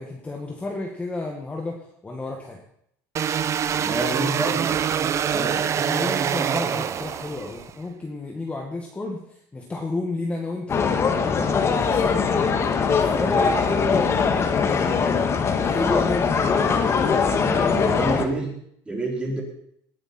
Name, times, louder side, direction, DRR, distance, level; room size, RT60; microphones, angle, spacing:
voice 1, 0.0-2.6 5.7-9.2 9.5-10.8 11.2-15.0 15.6-16.9 17.4-17.8, left 2 dB, 15° left, 0 dB, 1.8 m, -31 dB
sound 1, 3.2-7.7, right 8 dB, 35° right, 0.7 m, -25 dB
voice 2, 3.7-4.7 5.3-5.6 17.3-18.5 18.8-19.4, right 2 dB, 10° right, -2 dB, 4.5 m, -28 dB
sound 2, 10.7-18.3, left 5 dB, 30° left, 1.5 m, -21 dB
18.5 x 10.0 x 4.4 m, 0.69 s
cardioid pair, 140°, 9 cm